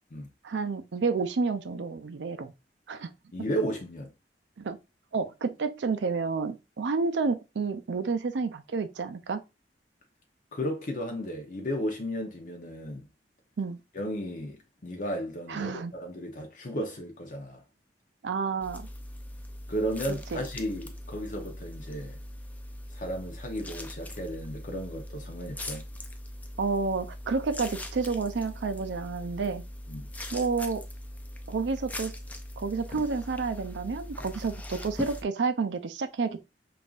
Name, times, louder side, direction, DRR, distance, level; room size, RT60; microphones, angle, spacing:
voice 1, 0.4-2.5 2.9-3.1 4.6-4.8 5.1-9.4 13.6-13.8 15.5-15.9 18.2-18.9 20.1-20.4 26.6-29.6 30.3-30.8 31.5-32.1 32.6-36.4, right 4 dB, 75° right, 0.5 m, -30 dB
voice 2, 3.3-4.1 10.5-13.1 13.9-17.6 19.7-22.2 22.9-25.8 29.9-30.1, equal, 45° left, 0.7 m, -34 dB
sound 1, 18.6-35.2, left 1 dB, 10° left, 0.4 m, -41 dB
5.3 x 2.5 x 2.4 m
head